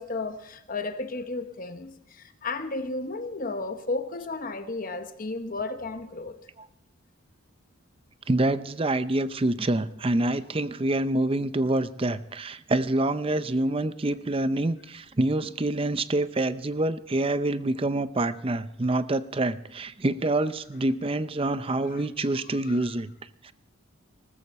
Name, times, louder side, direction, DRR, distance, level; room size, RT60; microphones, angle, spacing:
voice 1, 0.0-6.3 21.9-22.0 22.5-22.8, left 3 dB, 40° left, 1.0 m, -33 dB
voice 2, 8.3-23.1 23.4-23.5, right 2 dB, 25° right, 0.5 m, -26 dB
19.0 x 13.5 x 4.3 m
head